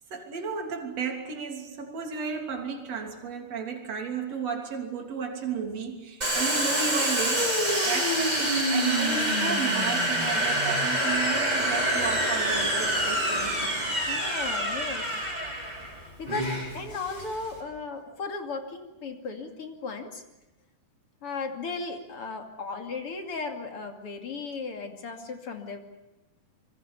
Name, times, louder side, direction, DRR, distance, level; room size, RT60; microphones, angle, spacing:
voice 1, 0.1-13.8, right 5 dB, 55° right, 2 dB, 4.3 m, -33 dB
Domestic sounds home sounds, 6.2-17.6, right 1 dB, 10° right, 6.7 m, -26 dB
voice 2, 14.1-15.3 16.2-20.2 21.2-25.8, left 4 dB, 45° left, 4 dB, 3.3 m, -36 dB
27.0 x 23.5 x 7.1 m, 1.0 s
omnidirectional pair, 3.6 m